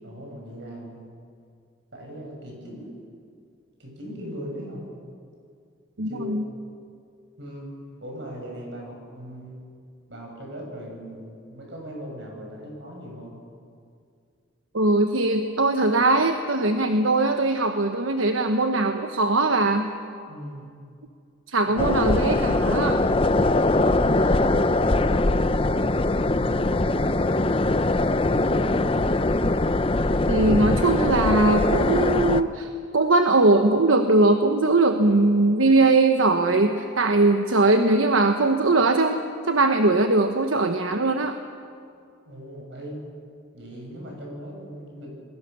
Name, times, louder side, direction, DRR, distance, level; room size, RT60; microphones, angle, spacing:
voice 1, 0.0-1.1 1.9-2.9 3.8-4.8 6.1-6.4 7.4-7.7 8.0-9.6 10.1-13.3 20.3-20.7 21.7-21.9 24.0-27.7 28.4-29.4 42.3-43.0 43.5-45.2, equal, 60° right, 0 dB, 7.4 m, -39 dB
voice 2, 6.0-6.4 14.7-19.9 21.5-23.0 30.3-32.7 32.9-39.2 39.5-41.4, right 2 dB, 80° right, 6 dB, 1.2 m, -20 dB
sound 1, 21.8-32.4, left 2 dB, 25° left, 0.6 m, -22 dB
28.0 x 22.0 x 7.1 m, 2.3 s
head